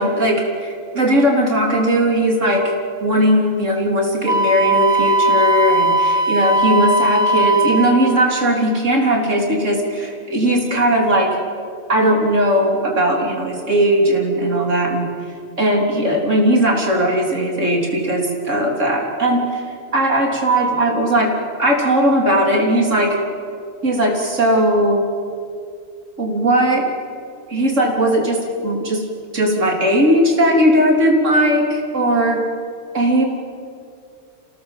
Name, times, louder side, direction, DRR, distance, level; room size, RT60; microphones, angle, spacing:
voice 1, 0.0-2.7 3.0-11.4 11.9-15.1 15.6-19.6 19.9-23.2 23.8-25.0 26.2-26.9 27.5-29.0 29.3-32.4 32.9-33.2, right 1 dB, 85° right, 1 dB, 3.8 m, -18 dB
Wind instrument woodwind instrument, 4.3-8.0, right 1 dB, 40° right, 1.4 m, -18 dB
28.0 x 18.0 x 7.4 m, 2.4 s
omnidirectional pair, 1.3 m